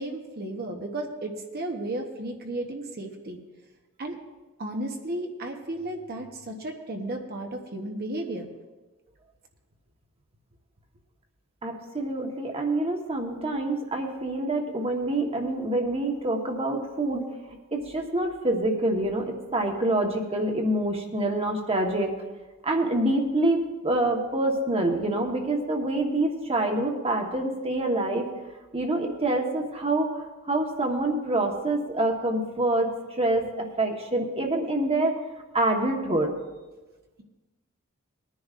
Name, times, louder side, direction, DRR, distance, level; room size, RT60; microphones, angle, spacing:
voice 1, 0.0-3.4 4.0-4.2 4.6-8.5, right 1 dB, 45° right, 2 dB, 1.0 m, -34 dB
voice 2, 11.6-17.2 17.7-22.1 22.6-28.3 28.7-30.2 30.5-35.1 35.5-36.3, right 2 dB, 25° right, 2 dB, 1.3 m, -26 dB
20.5 x 10.0 x 2.5 m, 1.2 s
head